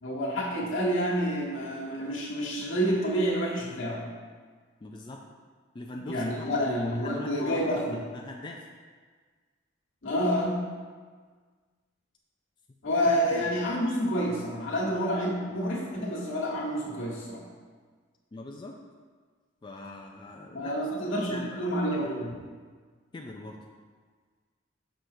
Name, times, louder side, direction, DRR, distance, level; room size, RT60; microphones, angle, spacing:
voice 1, 0.0-4.0 6.0-8.0 10.0-10.6 12.8-17.4 20.5-22.3, equal, 75° left, -4 dB, 1.3 m, -28 dB
voice 2, 4.8-5.2 5.7-8.7 13.1-13.7 18.3-18.8 19.6-21.6 21.9-22.1 23.1-23.6, left 2 dB, 25° left, 0 dB, 0.3 m, -42 dB
6.2 x 5.7 x 2.7 m, 1.5 s
head